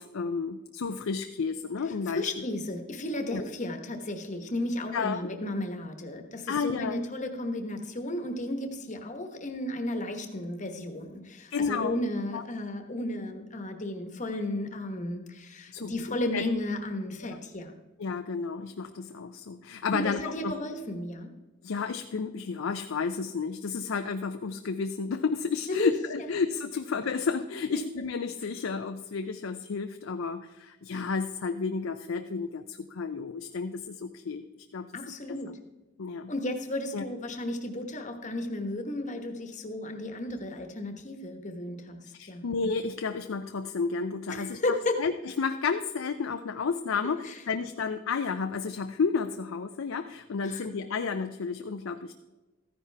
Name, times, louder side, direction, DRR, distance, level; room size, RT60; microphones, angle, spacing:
voice 1, 0.0-2.3 3.3-3.4 4.9-5.2 6.5-7.0 11.5-12.0 12.3-12.4 15.7-16.4 18.0-20.5 21.6-34.4 34.7-34.9 35.3-35.4 36.0-36.3 36.9-37.1 42.2-52.1, left 5 dB, 70° left, 7 dB, 0.5 m, -31 dB
voice 2, 2.1-17.7 19.9-21.3 25.7-25.9 27.7-27.8 34.9-35.5 36.3-42.0 42.3-42.5 44.3-45.0 47.2-47.3 50.4-50.6, left 1 dB, 35° left, 6 dB, 1.2 m, -33 dB
14.0 x 10.5 x 3.4 m, 1.1 s
head